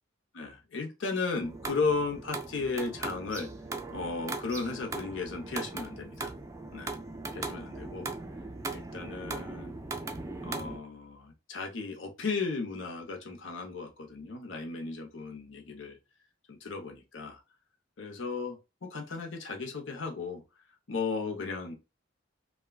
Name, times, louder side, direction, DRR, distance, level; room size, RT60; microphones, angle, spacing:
voice 1, 0.3-3.5 3.9-6.3 6.7-7.0 7.3-8.1 8.7-9.8 10.4-16.0 16.5-17.4 18.0-20.4 20.9-21.7, left 4 dB, 70° left, 3 dB, 0.8 m, -35 dB
sound 1, 1.4-10.8, right 3 dB, 15° right, 0.3 m, -39 dB
3.4 x 2.3 x 2.2 m, 0.27 s
head